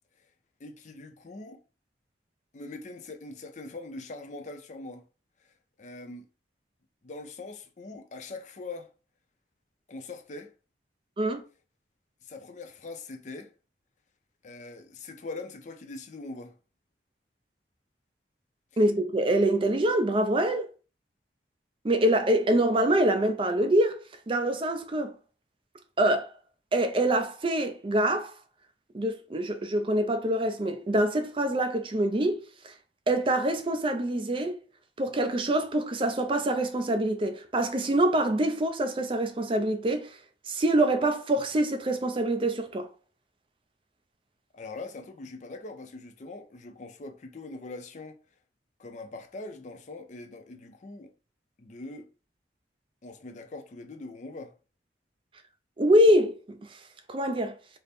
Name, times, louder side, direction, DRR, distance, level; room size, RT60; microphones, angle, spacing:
voice 1, 0.6-1.6 2.5-5.0 5.8-6.3 7.0-8.9 9.9-10.5 12.2-13.5 14.4-16.5 18.7-18.8 44.5-48.2 48.8-51.1 51.6-52.1 53.0-54.5, left 3 dB, 40° left, 0.5 m, -42 dB
voice 2, 18.8-20.7 21.8-25.1 26.0-26.3 26.7-28.3 28.9-32.7 33.1-34.6 35.0-40.2 40.5-42.9 55.8-56.6 57.1-57.5, right 1 dB, 30° right, 0.4 m, -25 dB
3.4 x 2.0 x 4.1 m
head